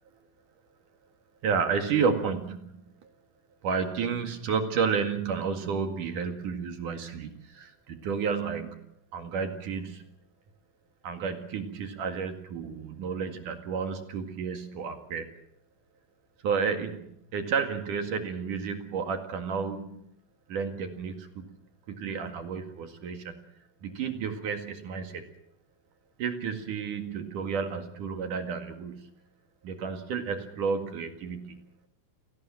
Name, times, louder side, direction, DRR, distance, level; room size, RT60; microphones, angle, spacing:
voice 1, 1.4-2.7 3.0-3.1 3.6-8.8 9.1-10.0 11.0-15.3 16.4-20.1 20.5-21.5 21.9-23.4 23.8-25.3 26.2-29.1 29.6-31.6, right 6 dB, 55° right, 7 dB, 2.8 m, -31 dB
29.0 x 17.5 x 7.7 m, 0.74 s
omnidirectional pair, 5.5 m